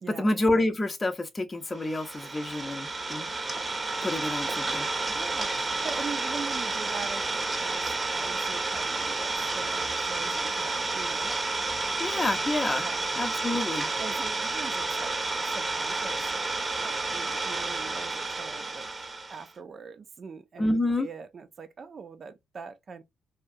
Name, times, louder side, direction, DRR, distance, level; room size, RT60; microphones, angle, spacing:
voice 1, 0.1-3.3 4.0-4.9 12.0-12.8 13.2-13.9 20.6-21.1, left 2 dB, 25° left, 0.6 m, -28 dB
Idling, 1.8-19.5, right 3 dB, 25° right, 0.8 m, -30 dB
voice 2, 5.1-11.4 12.8-13.1 14.0-15.2 15.5-18.9 19.3-23.0, right 5 dB, 45° right, 0.4 m, -42 dB
2.8 x 2.3 x 2.4 m
cardioid pair, 90°, 0 cm